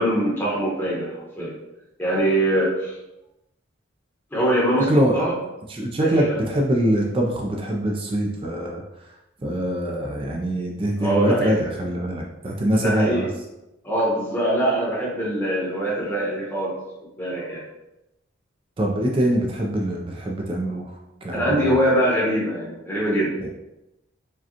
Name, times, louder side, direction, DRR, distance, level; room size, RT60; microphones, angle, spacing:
voice 1, 0.0-1.5 2.0-2.9 4.3-5.4 6.0-6.4 11.0-11.6 12.7-13.2 13.8-16.8 17.2-17.6 21.3-23.3, right 1 dB, 10° left, -6 dB, 0.9 m, -23 dB
voice 2, 4.9-5.2 5.7-8.8 9.4-13.3 18.8-20.8 21.2-21.7 23.4-23.5, right 1 dB, 25° right, -1 dB, 0.4 m, -23 dB
4.8 x 2.2 x 2.8 m, 0.95 s
head